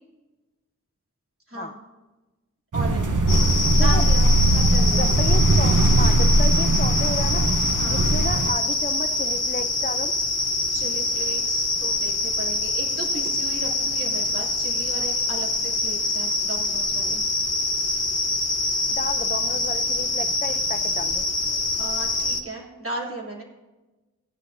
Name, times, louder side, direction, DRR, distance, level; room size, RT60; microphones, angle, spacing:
voice 1, 1.5-1.8 2.7-3.1 3.8-5.1 7.7-8.1 10.7-17.2 21.7-23.4, right 2 dB, 45° right, -4 dB, 2.8 m, -35 dB
sound 1, 2.7-8.5, right 1 dB, 80° right, 0.8 m, -19 dB
sound 2, 3.3-22.4, left 2 dB, 55° left, 1.0 m, -25 dB
voice 2, 5.0-7.5 7.9-10.1 18.9-21.3, left 2 dB, 30° left, 9 dB, 0.4 m, -32 dB
16.0 x 9.9 x 2.6 m, 1.1 s
wide cardioid pair, 45°, 30 cm